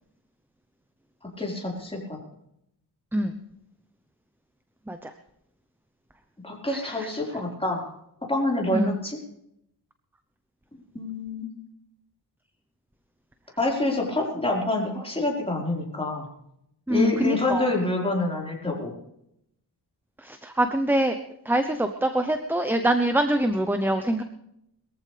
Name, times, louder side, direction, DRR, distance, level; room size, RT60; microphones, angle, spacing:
voice 1, 1.4-2.2 6.4-7.9 8.3-9.2 10.9-11.5 13.6-16.3 16.9-18.9, left 2 dB, 15° left, -2 dB, 4.7 m, -27 dB
voice 2, 6.7-7.1 8.7-8.9 16.9-17.7 20.2-21.2 21.5-24.2, right 1 dB, 5° right, 7 dB, 0.9 m, -24 dB
21.5 x 14.5 x 3.4 m, 0.77 s
wide cardioid pair, 105°, 40 cm